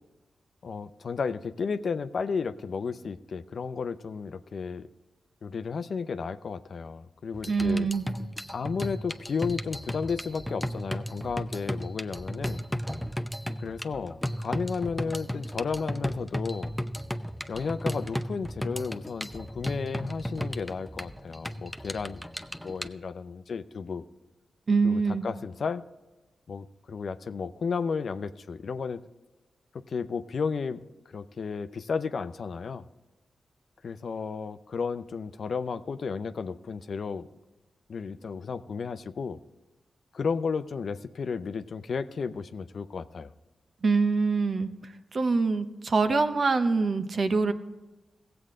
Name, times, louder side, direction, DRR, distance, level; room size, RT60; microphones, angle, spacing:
voice 1, 0.6-4.9 5.4-7.9 8.5-12.6 13.6-16.7 17.5-22.2 22.6-24.0 24.8-25.8 26.5-29.0 29.9-30.9 31.1-32.8 33.8-37.3 37.9-39.4 40.1-43.3, left 5 dB, 70° left, 11 dB, 0.5 m, -33 dB
sound 1, 7.3-22.9, equal, 5° left, 0.7 m, -35 dB
voice 2, 7.5-8.1 24.7-25.3 43.8-44.7 45.1-47.5, right 4 dB, 60° right, 9 dB, 0.8 m, -24 dB
15.5 x 7.8 x 3.7 m, 1.1 s
supercardioid pair, 45°, 0 cm